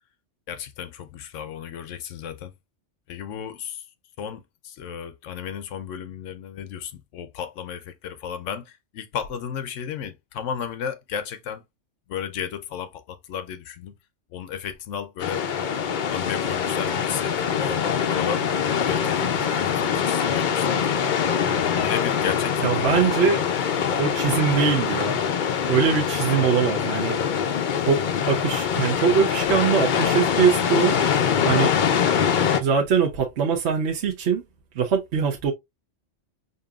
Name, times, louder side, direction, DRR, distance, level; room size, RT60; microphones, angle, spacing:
voice 1, 0.5-2.5 3.1-3.9 4.2-11.6 12.1-13.9 14.3-15.5 16.1-18.5 18.8-21.0 21.6-23.2, left 8 dB, 85° left, 0.9 m, -34 dB
sound 1, 15.2-32.6, left 7 dB, 55° left, 0.5 m, -24 dB
voice 2, 22.6-23.4 24.0-25.2 25.7-27.2 27.9-30.9 31.4-31.7 32.6-34.4 34.7-35.5, right 7 dB, 65° right, 1.0 m, -22 dB
5.2 x 2.7 x 2.3 m
omnidirectional pair, 1.3 m